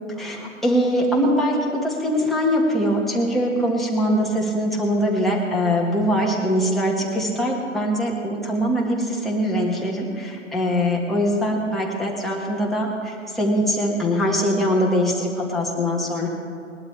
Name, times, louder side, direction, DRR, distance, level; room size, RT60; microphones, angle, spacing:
voice 1, 0.2-16.3, equal, ahead, -4 dB, 1.6 m, -22 dB
20.5 x 12.0 x 3.3 m, 2.4 s
figure-of-eight pair, 120°, 38 cm